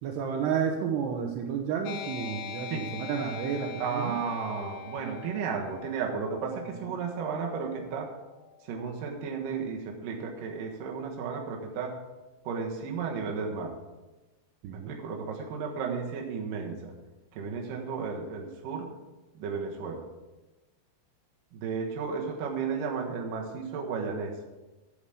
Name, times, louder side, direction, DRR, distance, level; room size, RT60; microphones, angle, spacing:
voice 1, 0.0-4.2 6.8-6.9 14.6-15.0, right 7 dB, 90° right, 2 dB, 2.3 m, -31 dB
sound 1, 1.9-8.9, left 9 dB, 85° left, 3.2 m, -43 dB
voice 2, 3.8-8.1 8.6-12.0 12.4-13.7 14.7-16.9 17.4-18.9 19.3-20.1 21.5-24.4, right 5 dB, 70° right, 1 dB, 2.0 m, -33 dB
8.3 x 8.1 x 7.1 m, 1.1 s
omnidirectional pair, 6.0 m